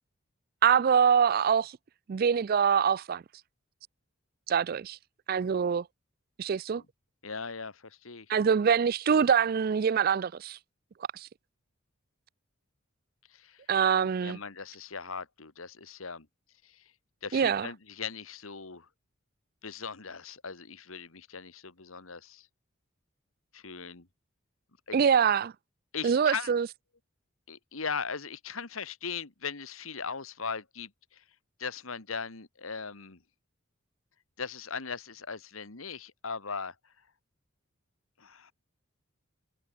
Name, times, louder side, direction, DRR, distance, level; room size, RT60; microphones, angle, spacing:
voice 1, 0.6-1.8 2.1-3.2 4.5-5.0 5.3-5.9 6.4-6.8 8.3-10.6 11.1-11.3 13.7-14.4 17.3-17.7 24.9-25.5 26.0-26.7, right 7 dB, 45° right, 0.3 m, -24 dB
voice 2, 7.2-8.3 13.3-13.6 13.9-16.3 16.6-16.8 17.2-18.9 19.6-22.5 23.5-24.1 24.9-25.0 25.9-26.5 27.5-31.2 31.6-33.2 34.4-36.7 38.2-38.5, left 5 dB, 80° left, 1.8 m, -39 dB
head